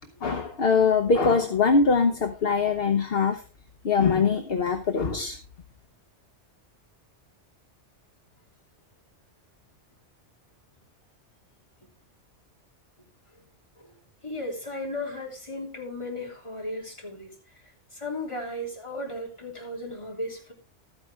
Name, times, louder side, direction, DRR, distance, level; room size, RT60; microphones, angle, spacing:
voice 1, 0.2-3.4 3.8-5.4, left 5 dB, 60° left, 6 dB, 1.1 m, -22 dB
voice 2, 14.2-17.3 17.9-20.5, left 1 dB, 25° left, -1 dB, 3.4 m, -35 dB
13.0 x 9.6 x 3.5 m, 0.34 s
omnidirectional pair, 1.2 m